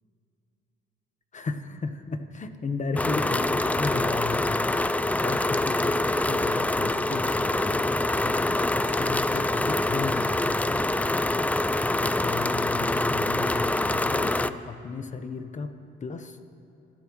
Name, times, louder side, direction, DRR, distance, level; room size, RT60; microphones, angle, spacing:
voice 1, 1.3-7.8 8.2-11.2 11.8-15.7 16.0-16.4, left 4 dB, 35° left, 8 dB, 1.1 m, -35 dB
sound 1, 3.0-14.5, left 2 dB, 5° left, 0.3 m, -25 dB
27.5 x 13.5 x 3.1 m, 2.7 s
cardioid pair, 90°, 20 cm